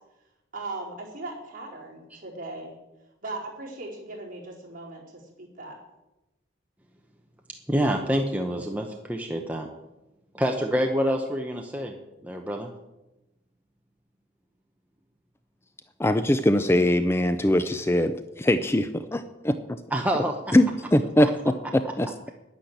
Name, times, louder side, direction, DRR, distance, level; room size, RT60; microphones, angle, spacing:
voice 1, 0.5-2.8 3.2-5.8, right 2 dB, 45° right, -3 dB, 4.5 m, -38 dB
voice 2, 7.7-9.7 10.3-11.9 12.2-12.7 19.9-20.4, equal, 10° right, 2 dB, 0.9 m, -26 dB
voice 3, 16.0-19.6 20.5-22.3, left 1 dB, 15° left, 10 dB, 0.5 m, -22 dB
10.5 x 10.0 x 8.1 m, 0.99 s
head